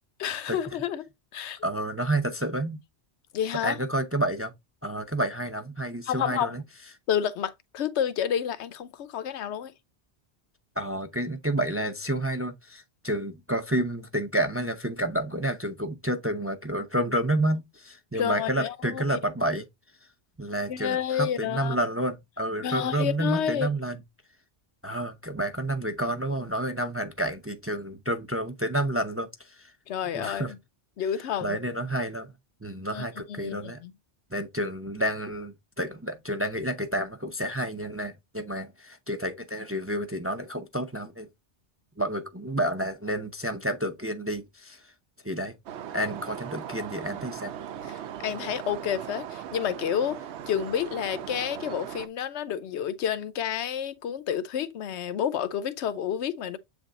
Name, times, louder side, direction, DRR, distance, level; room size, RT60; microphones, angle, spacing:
voice 1, 0.2-1.6 3.3-3.8 6.0-6.6 7.1-9.7 18.1-19.2 20.7-21.8 22.6-23.7 29.9-30.6 31.0-31.6 32.9-33.9 47.9-56.6, left 9 dB, 85° left, 1.0 m, -30 dB
voice 2, 1.6-2.8 3.6-4.5 4.8-6.6 10.8-19.7 20.4-24.0 24.8-29.7 30.1-30.5 31.4-32.3 32.6-33.8 34.3-41.3 42.0-44.9 45.2-45.5 45.9-47.5, right 1 dB, 15° right, 0.5 m, -30 dB
sound 1, 45.7-52.1, right 9 dB, 85° right, 0.9 m, -39 dB
7.9 x 3.5 x 3.7 m
omnidirectional pair, 1.1 m